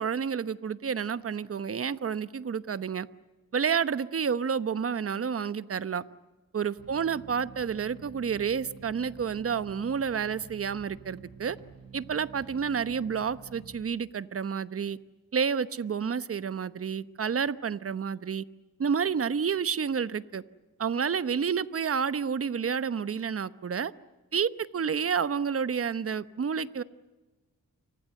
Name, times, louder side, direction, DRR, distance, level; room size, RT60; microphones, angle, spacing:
voice 1, 0.0-3.1 3.5-6.0 6.5-11.6 11.9-15.0 15.3-18.4 18.8-20.4 20.8-23.9 24.3-26.8, right 6 dB, 40° right, 14 dB, 1.0 m, -30 dB
sound 1, 6.8-13.8, right 6 dB, 80° right, 6.9 m, -49 dB
30.0 x 25.0 x 7.8 m, 1.2 s
cardioid pair, 95°, 34 cm